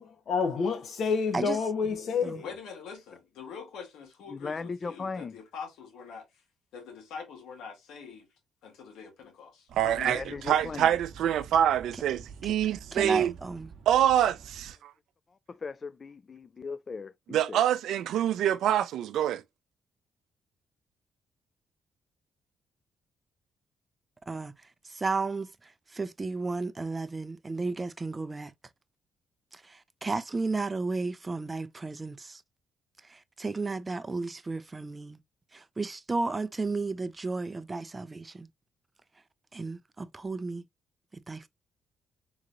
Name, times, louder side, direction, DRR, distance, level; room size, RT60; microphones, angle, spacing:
voice 1, 0.0-2.5, left 5 dB, 65° left, 1.1 m, -28 dB
voice 2, 2.4-6.3 6.7-8.3 8.6-9.5 9.8-10.1 10.7-10.8, left 6 dB, 85° left, 1.6 m, -44 dB
voice 3, 4.3-5.4 10.0-10.9 15.5-17.6, left 4 dB, 35° left, 0.4 m, -38 dB
sound 1, 9.7-14.7, right 6 dB, 60° right, 0.9 m, -48 dB
voice 4, 9.7-13.3 13.9-14.9 17.3-19.4, right 10 dB, 75° right, 0.5 m, -26 dB
voice 5, 12.9-13.7 24.3-24.5 24.9-28.5 29.5-32.4 33.1-35.2 35.5-38.5 39.5-40.6 41.3-41.5, right 3 dB, 25° right, 0.4 m, -33 dB
3.8 x 2.9 x 2.5 m
cardioid pair, 90°, 0 cm